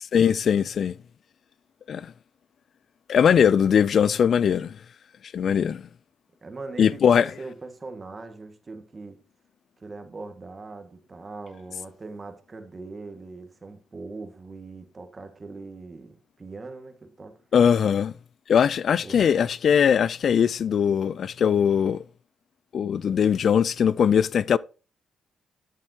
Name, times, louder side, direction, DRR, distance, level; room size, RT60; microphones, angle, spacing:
voice 1, 0.1-0.9 1.9-2.1 3.1-4.8 5.3-5.9 6.8-7.3 17.5-18.1 18.5-22.0 22.7-24.6, left 7 dB, 60° left, 0.4 m, -20 dB
voice 2, 6.4-9.2 9.8-17.4 19.0-19.3, right 3 dB, 30° right, 1.7 m, -40 dB
12.0 x 7.4 x 2.8 m
cardioid pair, 90°, 0 cm